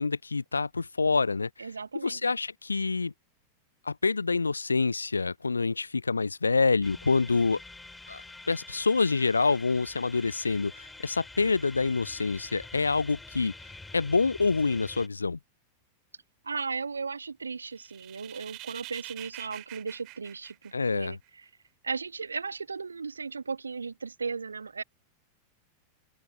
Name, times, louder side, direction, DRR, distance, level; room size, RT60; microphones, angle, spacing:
voice 1, 0.0-1.7 2.0-3.1 3.9-7.6 8.1-8.2 8.5-13.5 13.9-15.4 20.7-21.2, left 4 dB, 80° left, 0.4 m, -27 dB
voice 2, 1.6-2.2 16.4-21.4 21.8-24.8, right 5 dB, 75° right, 1.2 m, -36 dB
sound 1, 6.8-15.1, left 3 dB, 10° left, 5.4 m, -47 dB
sound 2, 17.7-21.3, right 24 dB, 40° right, 3.3 m, -45 dB
open air
figure-of-eight pair, 90°, 0 cm